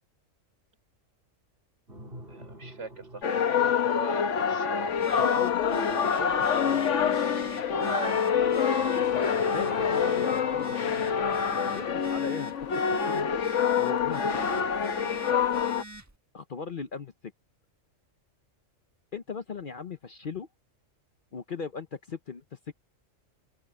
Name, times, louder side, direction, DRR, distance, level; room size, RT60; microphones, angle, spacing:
sound 1, 1.9-12.0, right 1 dB, 45° right, 3.8 m, -49 dB
voice 1, 2.3-5.3 7.8-8.2 15.2-15.8, right 3 dB, 60° right, 3.9 m, -40 dB
sound 2, 3.2-15.8, left 7 dB, 70° left, 1.4 m, -26 dB
Telephone, 4.9-16.2, right 2 dB, 15° right, 1.3 m, -45 dB
voice 2, 5.2-7.2 9.5-12.7 13.1-13.4 13.8-14.7 16.3-17.1 19.1-20.5 21.3-22.7, left 5 dB, 45° left, 0.9 m, -38 dB
omnidirectional pair, 1.3 m